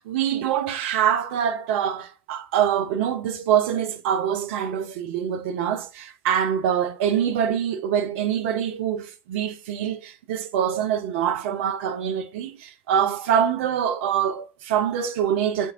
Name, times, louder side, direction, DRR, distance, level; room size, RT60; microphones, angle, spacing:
voice 1, 0.0-15.7, right 9 dB, 70° right, 0.4 m, -24 dB
3.5 x 2.6 x 2.8 m
figure-of-eight pair, 55°, 7 cm